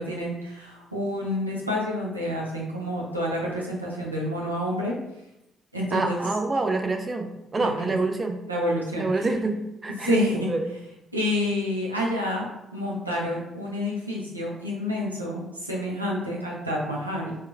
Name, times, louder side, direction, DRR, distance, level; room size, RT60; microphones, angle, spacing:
voice 1, 0.0-4.9 5.7-6.2 7.6-7.9 8.5-9.1 10.0-10.5 11.1-17.4, left 1 dB, 90° right, -3 dB, 0.4 m, -28 dB
voice 2, 5.9-8.4 9.0-10.7, right 3 dB, 30° right, 4 dB, 0.4 m, -27 dB
3.5 x 2.1 x 2.5 m, 0.89 s
figure-of-eight pair, 45°, 0 cm